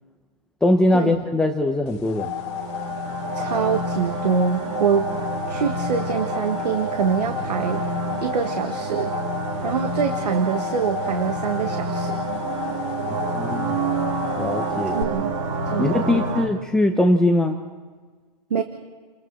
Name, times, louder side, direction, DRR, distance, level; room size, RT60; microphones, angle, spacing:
voice 1, 0.6-2.3 13.1-13.8 14.4-15.0 15.8-17.6, left 1 dB, 5° left, 3 dB, 0.7 m, -21 dB
sound 1, 1.9-15.0, left 11 dB, 40° left, 1.6 m, -33 dB
sound 2, 2.2-16.5, right 3 dB, 50° right, 2.7 m, -28 dB
voice 2, 3.3-5.1 5.5-7.8 8.2-9.1 9.6-12.2 14.9-15.4 15.7-16.3 18.5-18.6, right 6 dB, 75° right, 6 dB, 1.6 m, -24 dB
30.0 x 21.5 x 4.1 m, 1.4 s
hypercardioid pair, 145°, 21 cm